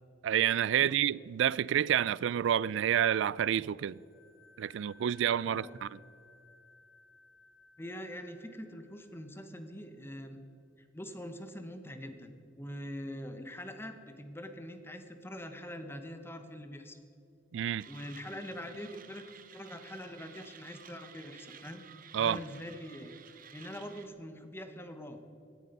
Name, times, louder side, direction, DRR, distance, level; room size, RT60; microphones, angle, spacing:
voice 1, 0.2-4.0 4.6-6.0 17.5-17.9 22.1-22.4, right 9 dB, 70° right, 0.3 m, -29 dB
sound 1, 3.6-10.1, left 3 dB, 50° left, 2.9 m, -62 dB
voice 2, 5.4-5.8 7.8-10.4 10.8-17.0 17.9-19.2 19.5-21.8 22.2-23.1 23.5-25.2, equal, 10° left, 0.9 m, -44 dB
Mechanisms, 17.8-24.1, right 8 dB, 45° right, 0.8 m, -54 dB
17.0 x 11.0 x 5.3 m
head